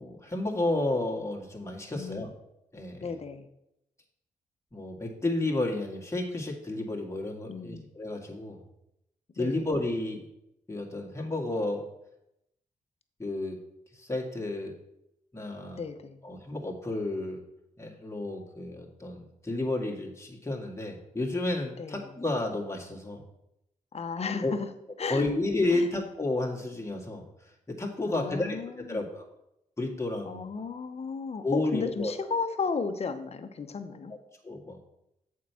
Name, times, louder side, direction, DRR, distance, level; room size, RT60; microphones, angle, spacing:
voice 1, 0.0-2.3 2.7-3.1 4.7-8.6 9.4-10.3 10.7-11.9 13.2-13.6 13.9-14.7 15.3-15.8 16.2-17.4 17.8-23.2 24.4-24.5 25.1-28.6 28.9-29.3 29.8-30.4 31.4-32.1 34.4-34.8, left 2 dB, 20° left, 0 dB, 1.9 m, -31 dB
voice 2, 1.9-2.3 3.0-3.5 7.5-7.9 9.4-9.6 15.7-16.2 21.8-22.1 23.9-24.7 25.0-25.2 25.7-25.9 28.1-29.1 30.3-34.1, left 5 dB, 45° left, 9 dB, 0.9 m, -34 dB
7.3 x 4.7 x 5.7 m, 0.83 s
cardioid pair, 55°, 15 cm